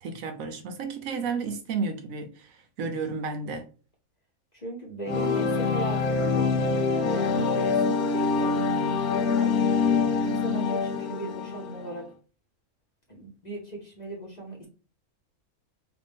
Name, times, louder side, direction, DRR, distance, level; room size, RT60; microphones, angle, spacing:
voice 1, 0.0-2.5 2.8-3.7, right 4 dB, 75° right, 1.0 m, -32 dB
voice 2, 4.5-9.5 10.2-12.1 13.1-14.7, right 1 dB, 35° left, 0.9 m, -37 dB
sound 1, 5.1-12.0, left 4 dB, 80° left, 1.1 m, -25 dB
3.2 x 2.5 x 3.5 m
omnidirectional pair, 1.6 m